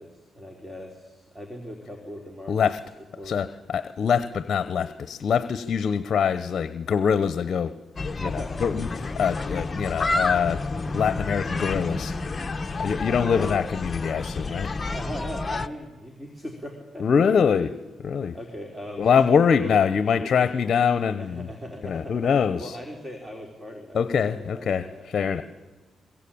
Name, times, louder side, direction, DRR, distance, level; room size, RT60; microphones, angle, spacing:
voice 1, 0.0-2.6 3.2-3.4 8.2-8.6 9.9-10.0 13.3-13.7 14.8-17.6 18.3-19.1 19.5-19.9 20.2-20.5 21.2-22.3 22.6-25.4, equal, 10° right, 3 dB, 3.6 m, -39 dB
voice 2, 2.5-2.8 3.2-7.8 8.2-12.3 12.8-14.7 17.0-17.7 18.0-18.4 19.0-21.5 21.8-22.8 23.9-25.4, left 6 dB, 55° left, 13 dB, 0.9 m, -24 dB
sound 1, 8.0-15.7, left 3 dB, 30° left, 1.0 m, -30 dB
23.5 x 22.0 x 8.7 m, 1.2 s
cardioid pair, 90°, 0 cm